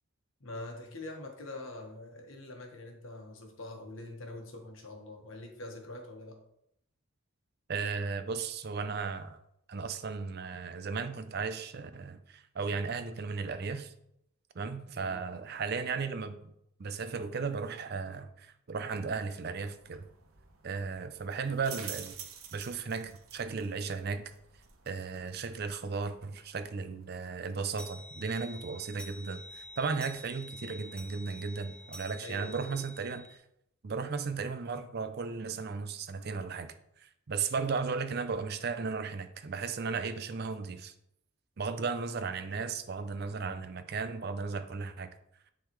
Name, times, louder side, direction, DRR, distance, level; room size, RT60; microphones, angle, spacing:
voice 1, 0.4-6.4 14.9-15.2 32.2-32.8 33.9-34.0, left 2 dB, 70° left, 2 dB, 1.3 m, -44 dB
voice 2, 7.7-9.4 9.7-13.9 14.6-16.5 16.8-20.1 20.6-22.1 22.5-24.2 24.9-33.4 33.8-40.9 41.6-45.1, right 5 dB, 50° right, 11 dB, 0.5 m, -35 dB
sound 1, 19.7-30.3, right 8 dB, 85° right, 0.8 m, -51 dB
sound 2, 25.4-25.6 26.1-26.2 26.5-26.6 26.9-33.4, left 1 dB, 5° left, 0.6 m, -49 dB
10.0 x 4.0 x 3.1 m, 0.77 s
head